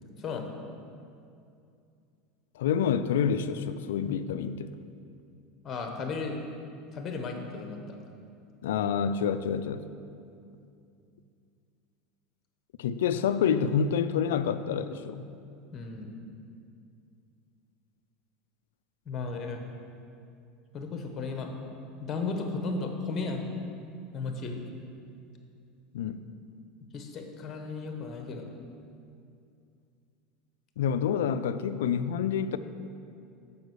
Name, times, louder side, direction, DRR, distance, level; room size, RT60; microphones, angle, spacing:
voice 1, 0.2-0.5 5.6-6.4 6.9-8.0 15.7-16.1 19.1-19.6 20.7-21.5 22.0-23.4 24.1-24.5 26.9-28.4, left 4 dB, 40° left, 4 dB, 1.1 m, -34 dB
voice 2, 2.6-4.7 8.6-9.9 12.8-15.3 25.9-26.3 30.8-32.6, left 7 dB, 80° left, 12 dB, 0.3 m, -28 dB
6.6 x 5.4 x 6.3 m, 2.5 s
hypercardioid pair, 95°, 0 cm